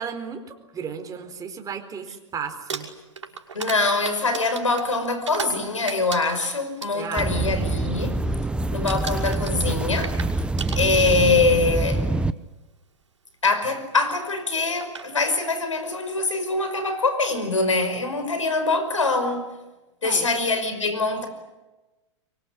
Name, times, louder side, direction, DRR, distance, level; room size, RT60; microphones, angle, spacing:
voice 1, 0.0-2.9 6.9-7.3 20.0-20.3, right 6 dB, 20° right, 4.2 m, -34 dB
Crumpling crinkling, 2.5-5.6 5.9-7.3 7.6-8.0 8.2-8.6 8.9-11.3 12.2-12.3 14.3-14.4 14.8-15.1, right 6 dB, 80° right, 5.9 m, -35 dB
voice 2, 3.5-8.2 8.7-10.2 10.8-12.0 13.4-19.5 20.0-21.3, left 3 dB, 90° left, 5.4 m, -23 dB
sound 1, 7.2-12.3, right 2 dB, 5° right, 0.9 m, -25 dB
25.0 x 24.0 x 9.9 m
hypercardioid pair, 105°, 16 cm